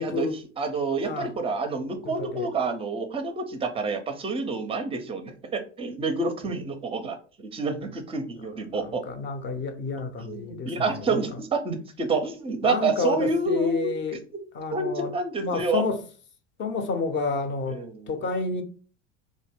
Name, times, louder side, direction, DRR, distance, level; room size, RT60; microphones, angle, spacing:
voice 1, 0.0-0.4 1.0-1.3 1.8-2.5 8.7-11.2 12.6-14.2 14.5-16.0 16.6-17.8 18.1-18.6, left 4 dB, 35° left, 0.5 m, -30 dB
voice 2, 0.6-9.0 10.3-13.9 14.7-15.8 17.7-18.1, right 3 dB, 15° right, 0.5 m, -28 dB
2.5 x 2.1 x 3.3 m
hypercardioid pair, 75°, 35 cm